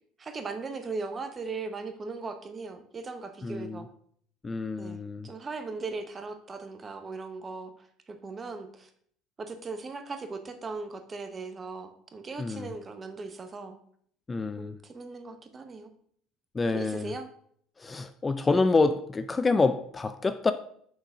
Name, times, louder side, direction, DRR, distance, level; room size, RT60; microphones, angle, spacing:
voice 1, 0.2-3.9 4.8-8.9 9.4-13.8 14.6-15.9 16.7-17.3, right 4 dB, 30° right, 1.0 m, -38 dB
voice 2, 3.4-3.8 4.4-5.3 12.4-12.7 14.3-14.8 16.5-17.1 17.8-20.5, left 3 dB, 25° left, 0.4 m, -27 dB
6.1 x 4.0 x 4.8 m
hypercardioid pair, 75°, 0 cm